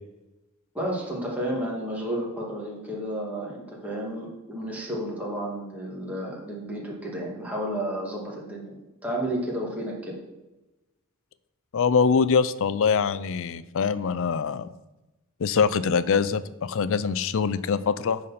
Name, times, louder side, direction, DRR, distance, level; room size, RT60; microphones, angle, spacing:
voice 1, 0.7-10.2, right 1 dB, 5° right, -4 dB, 2.0 m, -32 dB
voice 2, 11.7-14.7 15.4-18.2, left 6 dB, 65° left, 15 dB, 0.4 m, -23 dB
10.0 x 4.2 x 5.7 m, 1.0 s
head